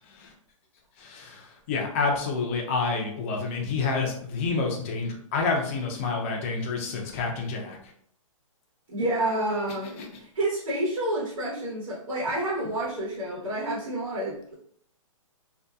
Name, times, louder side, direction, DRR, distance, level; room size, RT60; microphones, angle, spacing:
voice 1, 1.0-7.8 10.0-10.1, left 4 dB, 25° left, 1 dB, 0.4 m, -28 dB
voice 2, 8.9-14.5, right 1 dB, 90° right, -6 dB, 1.1 m, -29 dB
2.7 x 2.3 x 2.2 m, 0.64 s
hypercardioid pair, 160°, 17 cm